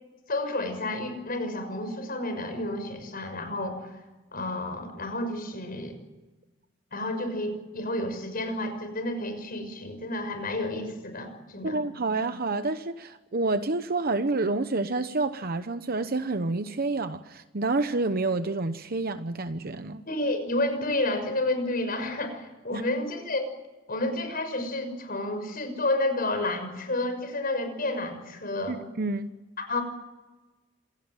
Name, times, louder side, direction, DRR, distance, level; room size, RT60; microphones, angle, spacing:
voice 1, 0.3-4.0 4.3-6.0 6.9-11.8 20.1-23.5 23.9-28.8 29.6-29.8, left 2 dB, 50° left, 8 dB, 6.2 m, -30 dB
voice 2, 11.6-20.0 22.7-22.8 28.7-29.3, right 3 dB, 50° right, 9 dB, 1.0 m, -28 dB
27.5 x 17.5 x 9.1 m, 1.1 s
head